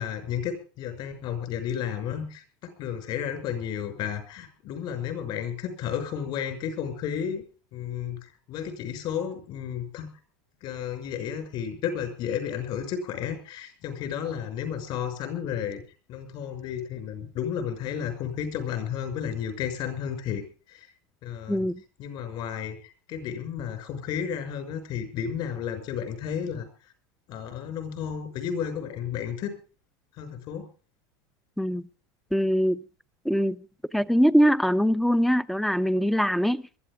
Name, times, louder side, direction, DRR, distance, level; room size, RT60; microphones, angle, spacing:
voice 1, 0.0-7.4 7.7-8.2 8.5-10.1 10.6-15.8 16.1-20.9 21.2-21.7 22.0-26.7 27.3-29.6 30.2-30.7, left 8 dB, 55° left, 6.1 m, -32 dB
voice 2, 21.5-21.8 31.6-31.8 32.3-32.8 33.2-33.6 33.9-36.6, equal, ahead, 0.6 m, -22 dB
22.5 x 13.5 x 3.6 m
supercardioid pair, 115°, 10 cm